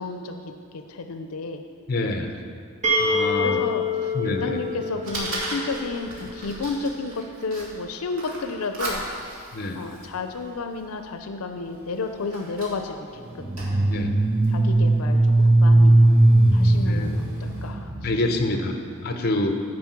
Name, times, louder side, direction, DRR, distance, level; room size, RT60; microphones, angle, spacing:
voice 1, 0.0-1.6 3.0-9.0 9.7-13.5 14.5-16.0 16.5-18.4, left 3 dB, 80° left, 6 dB, 0.5 m, -32 dB
voice 2, 1.9-2.3 3.0-3.6 4.1-4.6 9.5-9.8 13.9-14.1 16.8-17.1 18.0-18.8 19.0-19.6, left 2 dB, 45° left, 5 dB, 0.7 m, -26 dB
sound 1, 2.8-6.6, left 2 dB, 35° right, 1.8 m, -27 dB
Fire, 4.2-17.7, right 1 dB, 80° right, 1.8 m, -39 dB
sound 2, 13.4-18.2, right 1 dB, 15° right, 0.3 m, -18 dB
9.4 x 5.0 x 6.0 m, 2.4 s
head